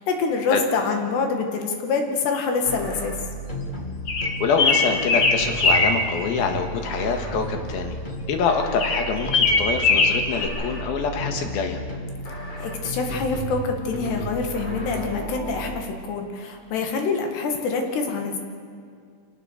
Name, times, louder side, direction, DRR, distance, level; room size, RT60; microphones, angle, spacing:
voice 1, 0.0-3.2 12.6-18.4, left 4 dB, 85° left, 3 dB, 4.2 m, -26 dB
sound 1, 2.6-15.8, right 1 dB, 25° left, 1.0 m, -33 dB
sound 2, 4.1-6.0 8.8-10.5, left 3 dB, 45° left, 1.8 m, -20 dB
voice 2, 4.4-8.0 8.3-11.8, left 5 dB, 70° left, 5 dB, 3.4 m, -25 dB
26.0 x 17.5 x 6.5 m, 2.1 s
omnidirectional pair, 4.7 m